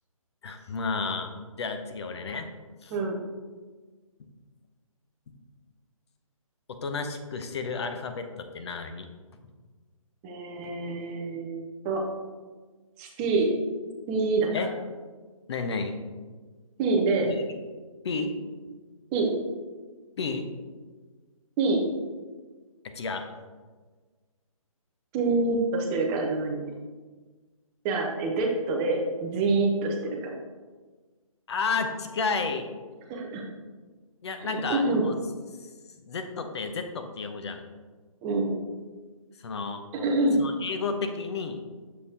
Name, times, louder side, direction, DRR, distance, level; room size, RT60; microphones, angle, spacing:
voice 1, 0.4-1.3 1.6-2.5 2.8-2.9 6.7-9.1 14.5-14.7 15.5-16.0 17.2-17.3 18.0-18.3 20.2-20.5 22.8-23.2 31.5-32.7 34.2-35.1 35.6-35.7 36.0-37.6 39.4-39.8 40.4-41.6, left 4 dB, 50° left, 6 dB, 0.7 m, -31 dB
voice 2, 10.2-12.0 13.0-13.5 14.1-14.5 16.8-17.4 19.1-19.3 21.6-21.8 25.1-26.7 27.8-30.3 33.1-33.4 34.4-35.0 38.2-38.5 39.9-40.4, right 3 dB, 10° right, 1 dB, 0.4 m, -26 dB
6.5 x 5.2 x 2.8 m, 1.4 s
hypercardioid pair, 155°, 18 cm